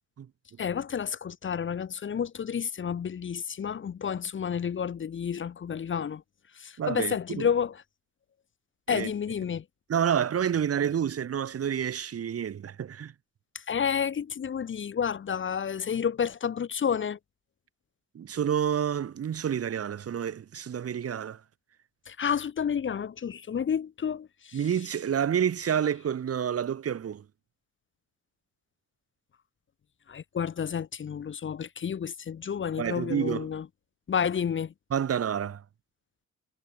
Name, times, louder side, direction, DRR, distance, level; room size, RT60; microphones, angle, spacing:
voice 1, 0.6-6.2 6.5-7.8 8.9-9.6 13.5-17.2 22.1-24.6 30.1-33.7 34.1-34.7, left 7 dB, 40° left, 1.1 m, -30 dB
voice 2, 6.8-7.5 8.9-9.1 9.9-13.1 18.2-21.4 24.5-27.2 32.8-33.5 34.9-35.6, right 8 dB, 50° right, 2.0 m, -29 dB
cardioid pair, 90°, 30 cm